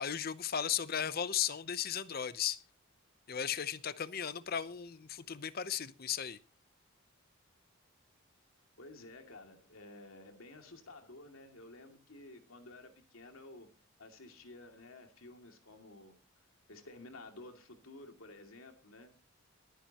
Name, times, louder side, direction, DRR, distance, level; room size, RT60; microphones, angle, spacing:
voice 1, 0.0-2.6 3.3-6.4, left 8 dB, 45° left, 0.7 m, -36 dB
voice 2, 8.8-13.7 14.0-16.2 16.7-19.1, left 2 dB, 85° left, 2.5 m, -53 dB
22.0 x 10.0 x 3.0 m
head